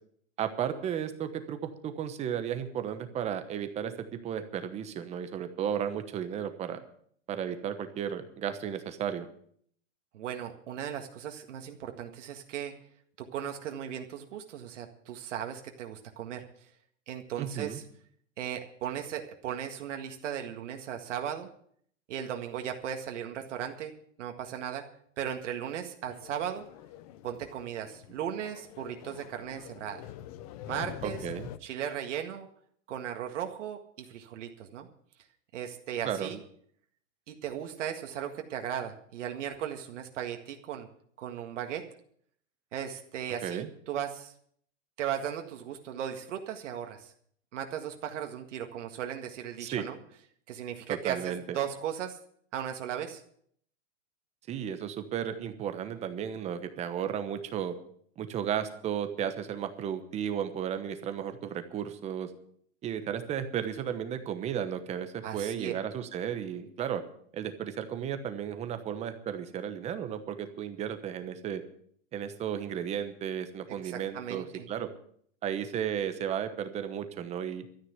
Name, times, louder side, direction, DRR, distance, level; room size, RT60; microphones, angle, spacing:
voice 1, 0.4-6.8 7.3-9.3 17.4-17.8 31.0-31.5 36.0-36.3 43.4-43.7 49.6-49.8 50.9-51.6 54.5-57.7 58.2-62.3 62.8-67.0 67.3-71.6 72.1-74.9 75.4-77.7, right 9 dB, 15° right, 9 dB, 1.0 m, -34 dB
voice 2, 10.1-12.7 13.2-16.4 17.1-17.8 18.4-21.5 22.1-23.9 24.2-24.8 25.2-26.7 27.2-30.0 30.7-31.2 31.6-32.5 32.9-34.9 35.5-36.4 37.3-40.9 41.2-41.9 42.7-44.3 45.0-47.1 47.5-50.0 50.5-52.2 52.5-53.2 65.2-65.7 73.8-74.7, right 9 dB, 65° right, 4 dB, 1.8 m, -37 dB
sound 1, 26.0-31.6, left 12 dB, 30° left, 0.6 m, -46 dB
13.0 x 9.8 x 8.2 m, 0.63 s
supercardioid pair, 160°, 39 cm